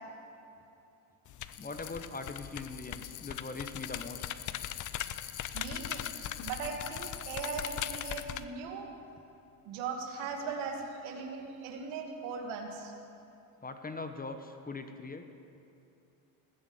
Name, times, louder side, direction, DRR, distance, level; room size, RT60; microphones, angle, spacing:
sound 1, 1.3-8.4, left 11 dB, 40° left, 0.6 m, -40 dB
sound 2, 1.5-8.3, left 14 dB, 70° left, 1.0 m, -46 dB
voice 1, 1.6-4.4 13.6-15.3, left 3 dB, 20° left, 7 dB, 1.0 m, -41 dB
voice 2, 5.5-6.0 6.4-8.9 9.6-12.9, right 5 dB, 70° right, 3 dB, 2.3 m, -39 dB
19.5 x 7.1 x 8.1 m, 2.7 s
supercardioid pair, 85°, 48 cm